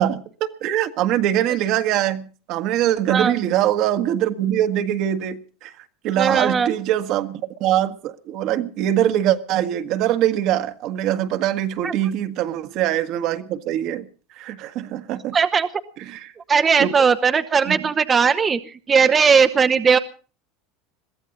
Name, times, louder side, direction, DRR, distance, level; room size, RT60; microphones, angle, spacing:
voice 1, 0.0-5.7 6.0-14.1 14.4-15.4 16.1-16.3 16.8-16.9 17.7-17.8, right 11 dB, 60° right, 1.6 m, -23 dB
voice 2, 6.1-6.7 11.8-11.9 15.3-15.7 16.5-20.0, right 6 dB, 25° right, 0.9 m, -18 dB
22.0 x 15.0 x 4.0 m
supercardioid pair, 105°, 0 cm